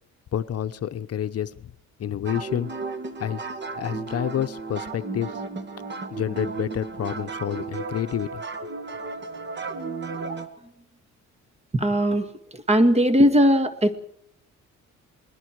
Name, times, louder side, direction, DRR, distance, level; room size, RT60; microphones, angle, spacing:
voice 1, 0.3-1.7 2.0-2.7 3.2-3.4 3.8-5.4 6.1-8.7, left 10 dB, 55° left, 10 dB, 0.8 m, -29 dB
sound 1, 2.3-10.5, right 4 dB, 35° right, 2.1 m, -34 dB
voice 2, 11.7-13.9, equal, 20° right, 10 dB, 2.0 m, -19 dB
28.5 x 20.5 x 4.7 m, 0.67 s
cardioid pair, 90°, 30 cm